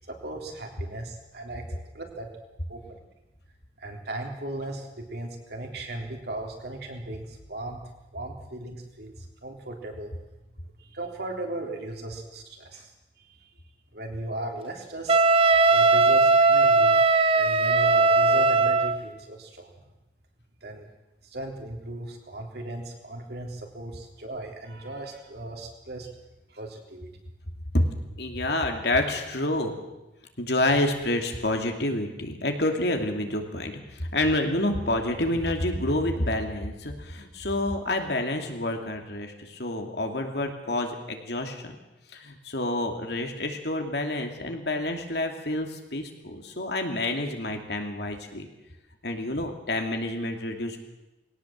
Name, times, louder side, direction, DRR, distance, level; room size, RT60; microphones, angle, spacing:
voice 1, 0.1-2.3 2.7-3.0 3.8-7.8 8.1-10.1 10.8-13.4 13.9-15.2 15.7-17.0 17.3-19.7 20.6-20.9 21.2-26.1 26.5-27.1, right 1 dB, 60° right, 2 dB, 3.6 m, -37 dB
Wind instrument woodwind instrument, 15.1-19.0, right 3 dB, 30° right, 0.8 m, -19 dB
voice 2, 28.2-29.8 30.4-41.8 42.1-48.5 49.0-50.9, left 1 dB, 60° left, 4 dB, 2.7 m, -28 dB
21.0 x 18.0 x 7.7 m, 0.99 s
head